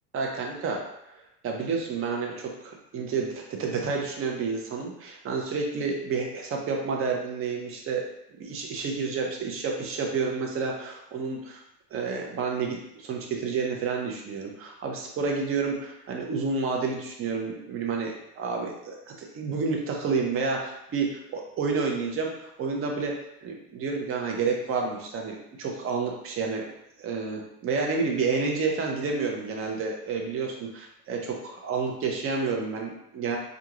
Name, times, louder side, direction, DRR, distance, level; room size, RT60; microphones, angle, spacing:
voice 1, 0.1-0.8 1.4-8.1 8.4-11.6 11.9-23.1 23.4-26.6 27.0-33.4, right 4 dB, 25° right, 1 dB, 0.8 m, -30 dB
4.6 x 2.5 x 2.9 m, 0.81 s
figure-of-eight pair, 80°, 49 cm